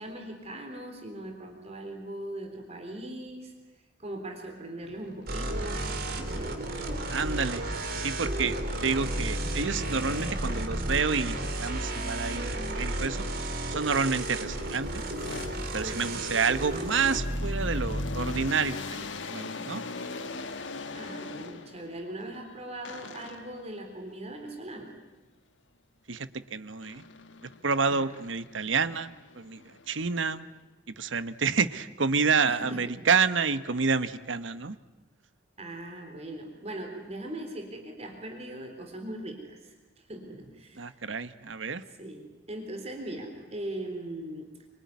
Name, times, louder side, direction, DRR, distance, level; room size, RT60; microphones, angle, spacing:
voice 1, 0.0-3.5 4.0-6.5 8.4-8.5 15.8-16.5 19.6-19.7 20.9-24.9 27.9-28.1 32.5-33.0 35.6-41.0 41.8-44.5, right 1 dB, 35° right, 4 dB, 3.8 m, -40 dB
sound 1, 4.8-10.6, equal, 45° left, 5.0 m, -45 dB
sound 2, 5.3-18.5, right 1 dB, 50° right, 3.3 m, -32 dB
voice 2, 7.1-7.7 7.9-8.6 8.8-15.0 15.7-19.8 26.1-27.0 27.6-29.6 29.9-30.5 31.0-34.8 40.8-41.8, right 5 dB, 70° right, 13 dB, 1.1 m, -29 dB
sound 3, 14.3-22.0 22.8-23.7 26.8-27.6 28.1-30.5, left 3 dB, 70° left, 1.4 m, -41 dB
25.0 x 25.0 x 9.6 m, 1.1 s
head